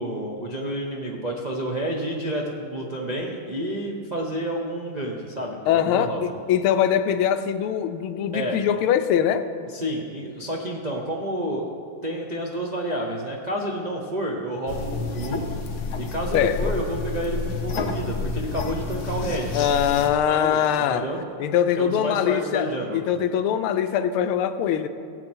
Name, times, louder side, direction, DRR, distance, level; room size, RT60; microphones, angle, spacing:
voice 1, 0.0-6.2 8.3-8.6 9.7-11.7 12.0-15.4 16.0-20.0 20.3-21.2 21.8-23.0, right 1 dB, 65° right, -2 dB, 0.4 m, -30 dB
voice 2, 5.7-9.5 16.3-16.7 19.5-21.1 21.4-24.9, left 9 dB, 80° left, 10 dB, 1.5 m, -22 dB
sound 1, 14.7-20.1, left 4 dB, 60° left, 1.3 m, -30 dB
16.5 x 8.1 x 4.4 m, 2.4 s
omnidirectional pair, 2.4 m